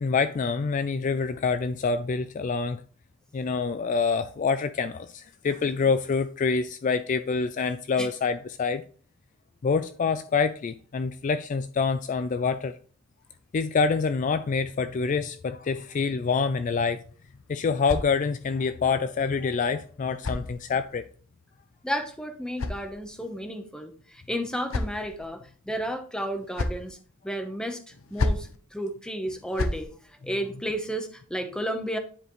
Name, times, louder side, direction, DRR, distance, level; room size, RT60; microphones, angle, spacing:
voice 1, 0.0-2.8 3.3-8.8 9.6-12.7 13.5-17.0 17.5-21.0, left 5 dB, 35° left, 0.3 m, -26 dB
sound 1, 17.0-18.6 19.6-21.1 22.0-23.4 24.2-25.3 26.2-26.9 27.9-28.6 29.3-29.9, left 2 dB, 70° left, 0.7 m, -33 dB
voice 2, 21.8-25.4 25.7-27.0 27.2-29.9 30.2-32.0, equal, 5° left, 0.9 m, -32 dB
10.0 x 5.0 x 3.1 m
head